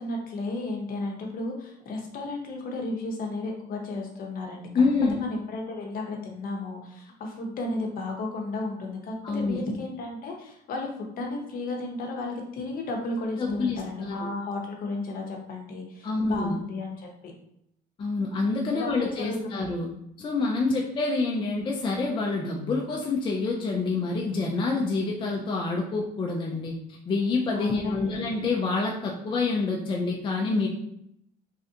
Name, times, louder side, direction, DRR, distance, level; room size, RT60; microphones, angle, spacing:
voice 1, 0.0-17.3 18.7-19.6 27.5-28.1, left 2 dB, 55° left, 1 dB, 0.8 m, -33 dB
voice 2, 4.7-5.2 9.2-9.6 13.4-14.3 16.0-16.6 18.0-19.9 20.2-26.7 27.1-30.7, left 3 dB, 30° left, -1 dB, 0.4 m, -27 dB
3.2 x 2.5 x 2.7 m, 0.76 s
cardioid pair, 110°, 17 cm